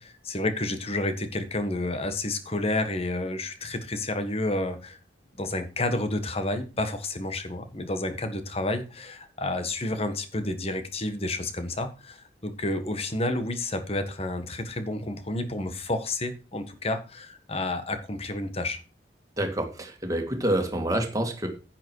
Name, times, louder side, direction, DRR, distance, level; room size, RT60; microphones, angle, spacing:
voice 1, 0.0-5.0 5.4-18.8, left 2 dB, 35° left, 9 dB, 1.5 m, -30 dB
voice 2, 19.4-21.5, right 1 dB, 20° right, 3 dB, 2.3 m, -27 dB
10.0 x 9.1 x 4.7 m, 0.33 s
head